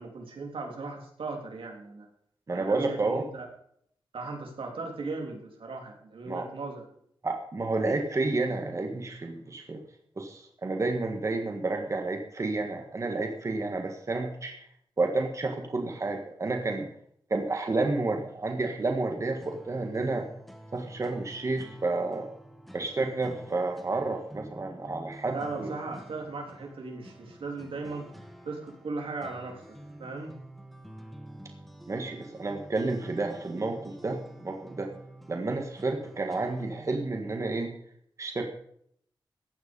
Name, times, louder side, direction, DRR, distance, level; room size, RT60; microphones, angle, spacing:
voice 1, 0.0-2.1 2.5-3.5 4.1-6.8 25.3-28.1 28.5-30.3, right 3 dB, 90° right, 1 dB, 3.6 m, -37 dB
voice 2, 2.5-3.2 6.3-6.5 7.2-9.8 10.2-14.7 15.0-16.9 17.3-20.3 20.7-22.2 22.7-25.7 31.9-34.9 35.3-37.7 38.2-38.5, right 3 dB, 35° right, 3 dB, 1.7 m, -30 dB
sound 1, 19.4-36.8, right 1 dB, ahead, 1.9 m, -49 dB
15.5 x 9.5 x 5.4 m, 0.66 s
wide cardioid pair, 160°, 9 cm